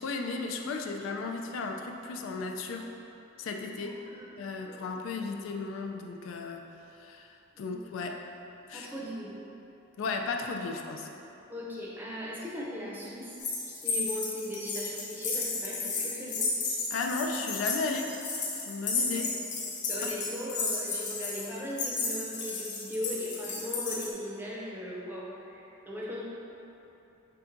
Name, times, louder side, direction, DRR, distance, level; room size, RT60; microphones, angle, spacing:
voice 1, 0.0-2.9 3.4-3.9 4.4-6.7 7.0-7.3 7.6-8.3 8.7-8.9 10.0-11.1 16.9-18.2 18.6-19.4 20.0-20.1, left 3 dB, 75° left, 3 dB, 0.3 m, -35 dB
voice 2, 3.7-4.4 4.6-5.0 7.5-7.8 8.7-9.4 11.5-13.4 13.7-16.5 19.0-19.6 19.9-26.2, left 1 dB, 10° right, -5 dB, 0.6 m, -39 dB
sound 1, 13.4-24.1, left 4 dB, 40° left, 0.6 m, -33 dB
5.7 x 3.4 x 2.5 m, 3.0 s
head